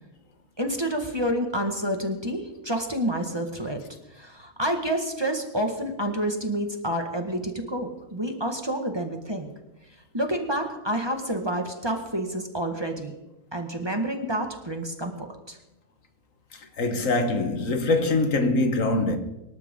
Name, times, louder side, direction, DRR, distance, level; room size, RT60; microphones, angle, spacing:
voice 1, 0.6-3.8 4.2-9.5 10.1-13.1 13.5-15.1 15.5-15.6, right 1 dB, 20° right, 1.6 m, -28 dB
voice 2, 16.8-19.2, left 2 dB, 70° left, 1.7 m, -23 dB
25.0 x 12.0 x 3.8 m
omnidirectional pair, 1.4 m